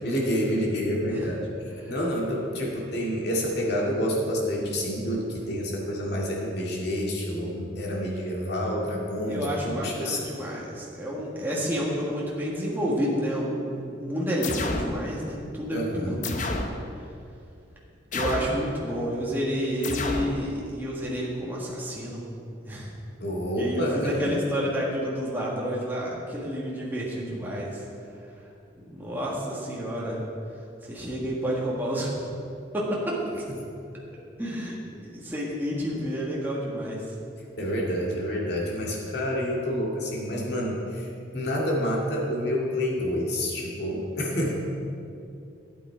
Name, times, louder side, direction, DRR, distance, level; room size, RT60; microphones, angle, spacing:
voice 1, 0.0-1.4 1.9-10.2 15.7-16.2 23.2-24.5 33.5-33.6 37.6-41.1 41.3-44.5, equal, 60° left, -2 dB, 2.2 m, -28 dB
voice 2, 9.3-16.4 18.1-22.2 22.6-22.9 23.5-27.8 28.8-30.2 30.8-32.1 32.7-33.4 34.4-34.8 35.1-37.0, equal, 10° right, -5 dB, 1.7 m, -30 dB
sound 1, 14.4-15.0 16.2-16.8 18.1-18.6 19.8-20.4, left 2 dB, 45° left, 0.8 m, -30 dB
12.0 x 9.0 x 4.6 m, 2.6 s
head